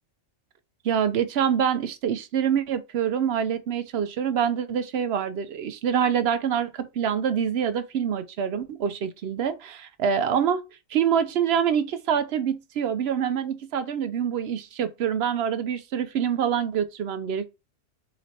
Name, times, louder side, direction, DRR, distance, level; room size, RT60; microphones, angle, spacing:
voice 1, 0.8-10.6 10.9-17.5, right 8 dB, 65° right, 0.7 m, -25 dB
4.2 x 2.9 x 4.1 m
omnidirectional pair, 1.3 m